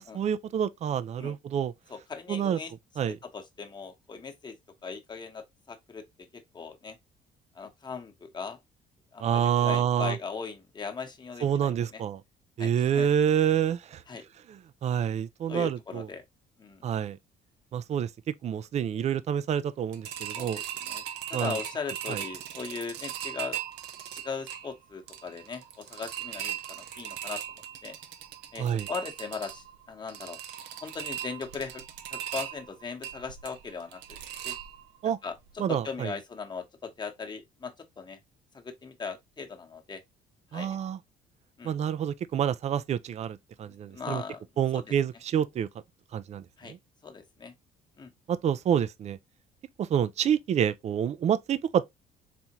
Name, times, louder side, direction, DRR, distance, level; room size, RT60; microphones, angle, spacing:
voice 1, 0.0-1.7 2.3-2.6 3.0-3.2 9.2-10.2 11.4-12.2 12.6-14.0 14.8-16.1 16.8-17.2 17.7-20.6 21.3-21.6 22.1-22.2 28.6-28.9 35.0-35.2 35.6-36.1 40.5-41.0 41.6-44.2 44.6-45.7 46.1-46.8 48.3-49.2 49.8-51.8, right 9 dB, 40° right, 0.4 m, -28 dB
voice 2, 1.9-2.7 3.3-4.5 4.8-6.0 6.3-7.0 7.5-8.6 9.1-12.0 12.6-13.1 14.1-14.2 15.5-16.2 16.6-16.9 20.3-21.0 21.3-23.6 24.1-27.4 27.8-27.9 28.5-30.4 30.8-31.8 32.1-34.2 34.4-34.5 35.0-38.2 38.5-40.0 40.5-40.8 41.6-41.7 43.9-44.4 44.7-44.8 46.6-46.7 47.0-47.5 48.0-48.1, left 5 dB, 25° left, 1.1 m, -39 dB
sound 1, 19.9-35.1 35.5-35.6 35.9-36.0, right 11 dB, 90° right, 0.7 m, -39 dB
4.2 x 3.5 x 2.9 m
cardioid pair, 110°, 17 cm